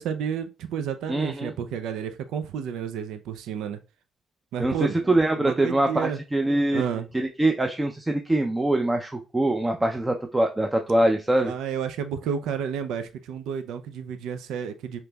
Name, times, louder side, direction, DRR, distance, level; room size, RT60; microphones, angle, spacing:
voice 1, 0.0-3.8 4.5-5.0 5.4-6.2 6.7-7.1 11.4-15.0, right 7 dB, 85° right, 10 dB, 0.4 m, -31 dB
voice 2, 1.1-1.5 4.6-6.8 7.1-11.5, right 1 dB, 15° right, 4 dB, 0.5 m, -23 dB
5.0 x 2.9 x 2.2 m, 0.30 s
cardioid pair, 90°, 0 cm